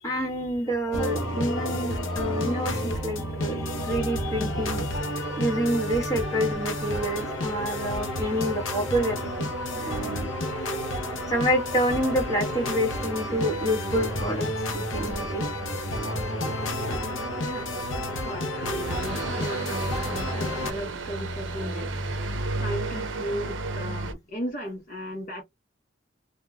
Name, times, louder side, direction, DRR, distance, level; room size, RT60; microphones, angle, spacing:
voice 1, 0.0-10.3 11.3-15.5 16.8-17.1, equal, 15° left, 1.4 m, -28 dB
sound 1, 0.9-20.7, left 1 dB, 85° left, 0.7 m, -31 dB
sound 2, 4.3-24.1, right 2 dB, 70° right, 0.6 m, -36 dB
voice 2, 10.0-10.3 17.3-25.4, equal, 45° left, 0.7 m, -37 dB
3.1 x 2.2 x 2.2 m
head